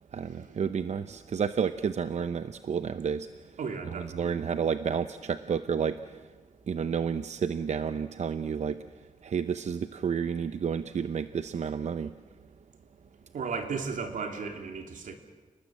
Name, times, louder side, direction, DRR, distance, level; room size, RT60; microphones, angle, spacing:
voice 1, 0.1-3.6 3.9-6.3 6.7-8.8 9.2-12.1, right 7 dB, 60° right, 11 dB, 0.7 m, -31 dB
voice 2, 3.6-4.5 13.3-15.2, right 5 dB, 85° right, 5 dB, 3.0 m, -35 dB
29.5 x 19.5 x 7.7 m, 1.3 s
wide cardioid pair, 120°, 13 cm